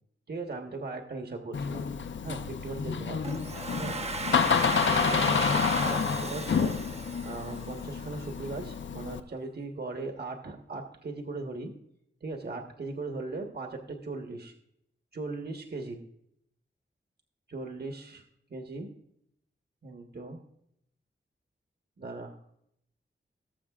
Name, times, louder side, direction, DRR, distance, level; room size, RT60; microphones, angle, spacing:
voice 1, 0.3-1.8 2.2-3.2 3.8-4.0 4.9-5.7 6.2-6.8 7.2-11.7 12.2-14.5 15.1-16.0 17.5-18.2 18.5-18.9 19.8-20.4 22.0-22.4, right 3 dB, 55° right, 3 dB, 1.3 m, -38 dB
Door, 1.5-9.2, left 6 dB, 70° left, 0.6 m, -29 dB
Domestic sounds home sounds, 3.2-8.0, right 3 dB, 30° right, 0.7 m, -35 dB
18.5 x 7.2 x 2.4 m, 0.75 s
wide cardioid pair, 85°, 20 cm